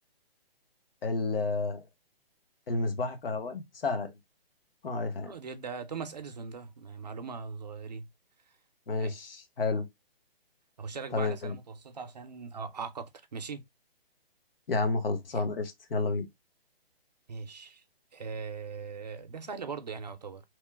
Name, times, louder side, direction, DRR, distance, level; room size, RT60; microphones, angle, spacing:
voice 1, 1.0-1.8 2.7-4.1 4.8-5.3 8.9-9.9 11.1-11.6 14.7-16.3, left 3 dB, 65° left, 0.9 m, -30 dB
voice 2, 5.2-8.1 9.0-9.3 10.8-13.6 17.3-17.8 18.1-20.4, right 5 dB, 45° right, 0.4 m, -40 dB
3.0 x 2.0 x 3.2 m
hypercardioid pair, 175°, 30 cm